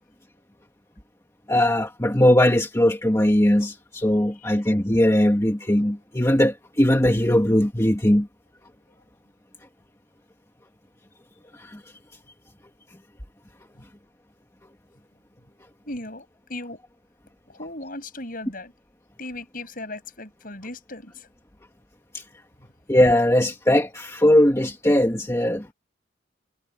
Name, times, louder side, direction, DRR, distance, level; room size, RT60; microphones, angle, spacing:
voice 1, 1.5-8.3 11.5-11.8 22.1-22.2 22.9-25.7, left 1 dB, 15° left, 1.8 m, -20 dB
voice 2, 15.9-16.8 17.5-18.7 19.2-21.3, left 2 dB, 45° left, 8.0 m, -37 dB
head